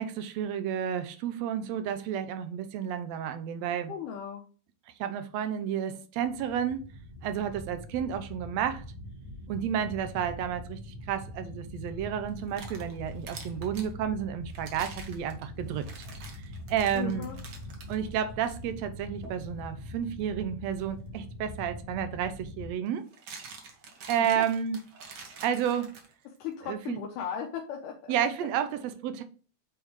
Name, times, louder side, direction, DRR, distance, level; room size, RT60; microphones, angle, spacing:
voice 1, 0.0-3.9 5.0-6.8 7.2-8.8 9.5-15.9 16.7-17.3 17.9-23.0 24.1-24.8 25.4-25.9 26.7-27.0 28.1-29.2, right 9 dB, 75° right, 1.6 m, -31 dB
voice 2, 3.9-4.4 16.9-17.4 24.2-24.4 26.3-28.1, left 8 dB, 85° left, 2.4 m, -37 dB
sound 1, 6.1-22.7, left 1 dB, 15° right, 1.0 m, -43 dB
sound 2, 12.3-13.9 14.5-17.9 18.4-18.6 19.2-19.4 21.6-21.7 22.9-26.4, right 4 dB, 55° right, 1.5 m, -47 dB
9.0 x 3.5 x 3.1 m
omnidirectional pair, 3.6 m